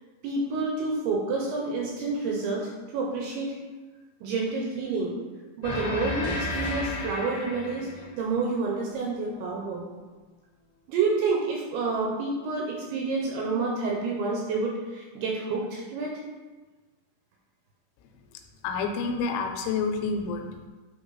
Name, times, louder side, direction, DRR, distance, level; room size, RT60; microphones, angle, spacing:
voice 1, 0.2-3.5 4.2-5.2 5.6-7.9 8.2-9.9 10.9-16.1, right 3 dB, 80° right, -1 dB, 2.3 m, -29 dB
sound 1, 5.6-8.6, left 2 dB, 60° left, 1.6 m, -33 dB
voice 2, 18.3-20.7, left 4 dB, 90° left, 4 dB, 3.1 m, -29 dB
9.2 x 3.2 x 3.9 m, 1.3 s
omnidirectional pair, 5.5 m